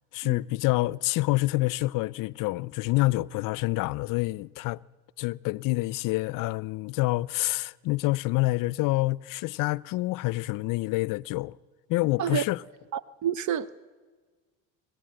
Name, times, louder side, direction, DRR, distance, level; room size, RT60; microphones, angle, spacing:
voice 1, 0.1-4.8 5.2-11.6 11.9-12.6, left 20 dB, 60° left, 0.5 m, -27 dB
voice 2, 12.9-13.7, right 9 dB, 50° right, 0.6 m, -29 dB
20.5 x 16.5 x 7.8 m
supercardioid pair, 90°, 37 cm